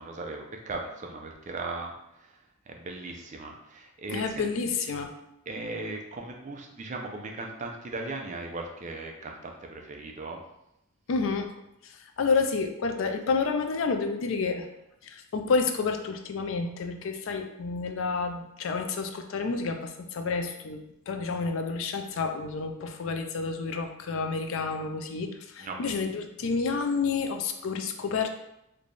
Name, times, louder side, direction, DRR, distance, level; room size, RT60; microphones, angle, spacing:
voice 1, 0.0-1.9 2.2-2.4 2.7-4.4 5.5-10.4 25.6-25.8, right 3 dB, 35° right, 2 dB, 0.4 m, -38 dB
voice 2, 4.1-5.1 11.1-11.5 11.8-14.7 15.0-28.3, left 4 dB, 65° left, 6 dB, 0.4 m, -29 dB
3.2 x 2.2 x 3.9 m, 0.84 s
head